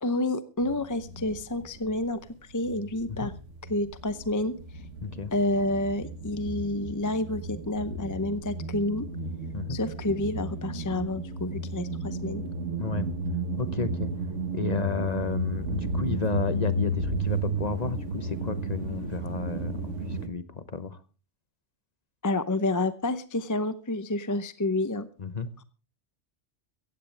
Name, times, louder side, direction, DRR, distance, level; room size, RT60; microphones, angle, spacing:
voice 1, 0.0-2.2 2.5-3.3 3.7-4.5 5.3-9.1 9.7-12.4 22.2-25.1, left 2 dB, 20° left, 12 dB, 0.7 m, -29 dB
sound 1, 0.6-2.2 2.5-20.3, right 2 dB, 85° right, 1.8 m, -33 dB
voice 2, 5.0-5.3 9.5-9.8 12.8-13.1 13.6-14.1 14.5-21.0 25.2-25.5, left 4 dB, 40° left, 12 dB, 1.0 m, -32 dB
16.0 x 15.5 x 3.4 m, 0.34 s
omnidirectional pair, 1.2 m